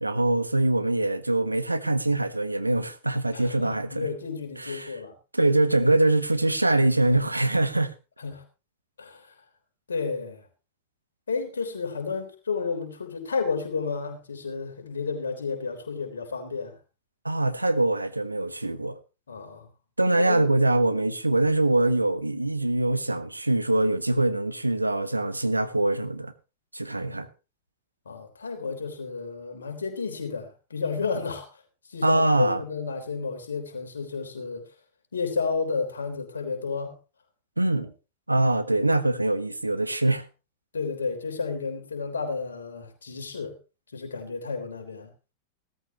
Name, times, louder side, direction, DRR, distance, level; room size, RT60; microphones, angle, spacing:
voice 1, 0.0-4.1 4.6-4.9 5.3-7.9 17.2-19.0 20.0-26.3 26.7-27.3 32.0-32.6 37.6-37.9 38.3-40.2, right 2 dB, 85° right, 1.0 m, -23 dB
voice 2, 3.3-5.1 8.2-8.4 9.0-9.3 9.9-10.5 11.3-16.8 19.3-19.7 20.1-20.5 27.0-27.2 28.1-31.5 31.9-34.6 35.1-37.0 40.7-43.6 43.9-45.1, left 4 dB, 70° left, 3.5 m, -32 dB
17.0 x 14.0 x 3.0 m
figure-of-eight pair, 90°, 0 cm